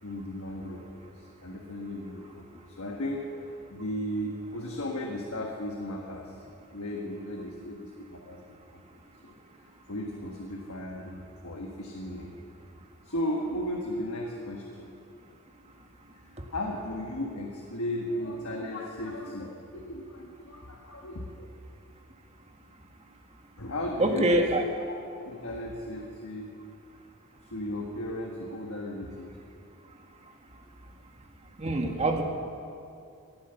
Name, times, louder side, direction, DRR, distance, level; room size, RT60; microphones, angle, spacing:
voice 1, 0.0-6.4 6.7-8.8 9.2-9.3 9.6-12.3 13.0-14.9 16.5-21.5 23.6-24.5 25.2-26.5 27.5-29.3, left 1 dB, 85° left, 0 dB, 1.4 m, -36 dB
voice 2, 24.0-24.6 31.6-32.2, right 1 dB, 30° right, 3 dB, 1.5 m, -24 dB
17.5 x 10.5 x 7.0 m, 2.6 s
head